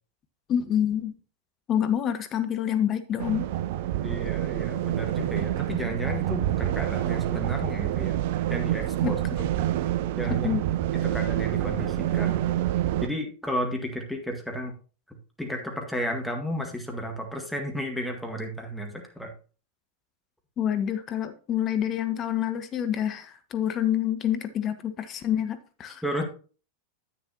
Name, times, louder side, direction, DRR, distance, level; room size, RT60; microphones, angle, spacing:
voice 1, 0.5-1.2 1.7-3.5 9.0-9.5 10.3-10.6 20.6-26.0, left 10 dB, 30° left, 10 dB, 0.8 m, -27 dB
sound 1, 3.2-13.1, right 13 dB, 50° right, 0.5 m, -27 dB
voice 2, 4.0-8.2 8.5-9.2 10.2-10.5 10.9-12.4 13.0-14.7 15.1-19.3 26.0-26.2, equal, ahead, 1 dB, 1.9 m, -33 dB
10.0 x 8.9 x 2.9 m, 0.38 s
figure-of-eight pair, 90°, 0 cm